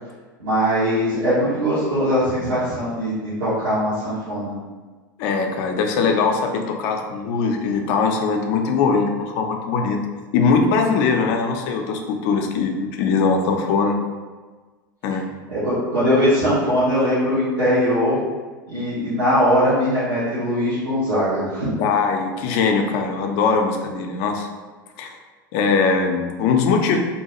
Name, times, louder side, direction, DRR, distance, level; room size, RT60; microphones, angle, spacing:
voice 1, 0.4-4.5 15.5-18.2 18.7-21.7, equal, 80° right, -12 dB, 1.0 m, -20 dB
voice 2, 5.2-10.0 10.3-14.0 15.0-15.2 21.8-24.5 25.0-25.2 25.5-27.0, left 5 dB, 55° left, 4 dB, 0.4 m, -21 dB
2.7 x 2.2 x 2.9 m, 1.3 s
hypercardioid pair, 85°, 11 cm